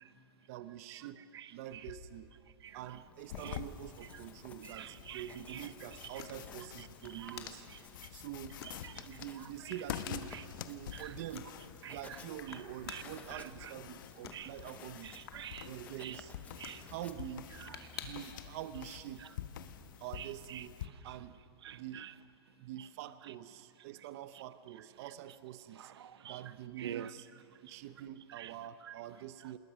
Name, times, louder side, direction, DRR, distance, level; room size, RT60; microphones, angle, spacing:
voice 1, 0.5-1.2 1.5-2.3 2.7-7.7 8.1-8.6 9.0-10.3 10.6-11.5 11.8-15.2 15.6-16.3 16.8-17.5 18.0-19.2 20.0-20.8 21.0-21.4 21.7-22.1 22.6-25.9 26.2-27.3 27.6-29.6, right 12 dB, 35° right, 0.6 m, -46 dB
sound 1, 1.7-18.4, left 7 dB, 75° left, 2.5 m, -54 dB
Writing, 2.7-18.1, left 5 dB, 10° left, 0.7 m, -57 dB
sound 2, 3.3-20.9, left 10 dB, 55° left, 1.0 m, -48 dB
voice 2, 4.6-5.6 7.1-7.4 8.0-8.1 8.8-9.1 9.6-9.7 10.3-10.4 10.9-11.1 11.8-12.0 12.5-12.6 12.9-13.0 13.3-13.7 14.3-14.5 15.0-15.7 16.0-16.2 16.6-16.9 17.6-18.0 20.2-20.6 21.1-21.2 21.6-22.1 25.8-26.4 26.8-27.1 28.4-28.5 28.8-28.9, right 10 dB, 80° right, 0.8 m, -46 dB
27.0 x 20.5 x 6.2 m
supercardioid pair, 170°, 13 cm